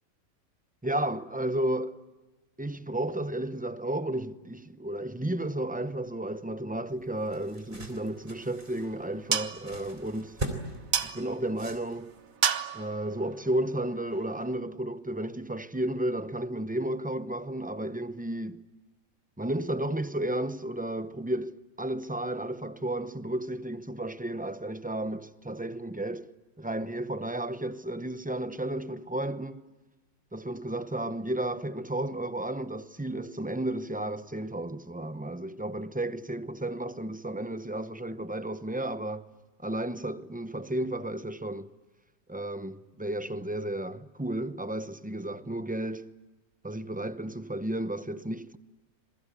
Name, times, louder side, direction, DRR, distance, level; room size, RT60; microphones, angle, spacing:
voice 1, 0.8-2.0 2.6-10.4 11.0-12.1 12.7-18.6 19.4-26.3 26.6-29.7 30.3-39.3 39.6-41.7 42.3-46.2 46.6-48.6, right 1 dB, 10° right, 0.5 m, -33 dB
Tent packing, 6.9-12.3, right 1 dB, 35° right, 3.8 m, -41 dB
sound 1, 8.1-14.6, right 8 dB, 70° right, 1.4 m, -35 dB
27.0 x 23.0 x 9.1 m
omnidirectional pair, 1.5 m